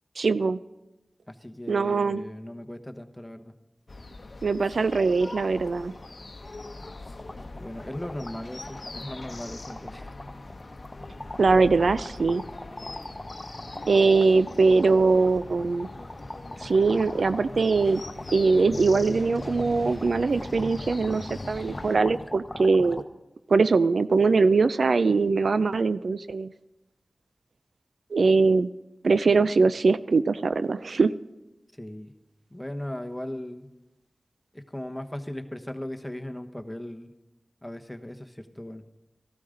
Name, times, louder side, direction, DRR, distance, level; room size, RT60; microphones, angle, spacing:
voice 1, 0.2-0.6 1.7-2.2 4.4-5.9 11.4-12.4 13.9-15.9 16.6-18.0 18.3-23.0 23.5-26.5 28.1-28.7 29.0-31.1, right 4 dB, 90° right, 14 dB, 0.3 m, -22 dB
voice 2, 1.3-3.5 7.5-10.1 31.8-32.1 32.5-33.7 34.5-37.1 37.6-38.8, left 1 dB, 10° left, 7 dB, 1.1 m, -38 dB
sound 1, 3.9-22.0, left 2 dB, 60° left, 0.8 m, -41 dB
sound 2, 3.9-4.1 4.4-4.5 4.8-23.0, left 1 dB, 35° left, 0.8 m, -42 dB
14.5 x 12.5 x 3.8 m, 0.97 s
wide cardioid pair, 50°, 0 cm